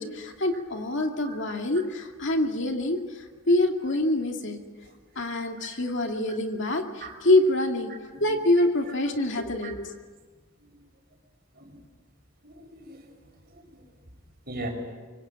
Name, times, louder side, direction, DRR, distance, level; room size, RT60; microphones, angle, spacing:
voice 1, 0.0-4.6 5.2-7.9 8.2-9.9, left 1 dB, 55° left, 3 dB, 2.5 m, -25 dB
voice 2, 1.2-1.6 5.6-5.8 7.0-7.1 8.1-8.2 8.6-8.7 9.6-9.7 12.4-13.0 14.5-14.7, right 2 dB, 45° right, 3 dB, 6.0 m, -38 dB
26.0 x 24.0 x 7.3 m, 1.4 s
head